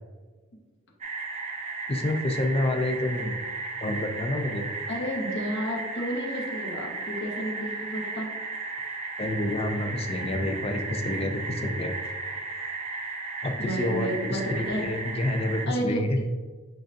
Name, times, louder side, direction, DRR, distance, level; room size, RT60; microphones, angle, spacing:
sound 1, 1.0-15.7, right 3 dB, 35° right, 0.5 m, -35 dB
voice 1, 1.9-3.4 3.8-4.7 9.2-11.9 13.4-16.3, left 1 dB, 30° left, 5 dB, 0.4 m, -28 dB
voice 2, 4.9-8.3 13.6-14.8 15.7-16.0, equal, 60° left, 0 dB, 1.0 m, -31 dB
7.6 x 2.5 x 2.5 m, 1.4 s
head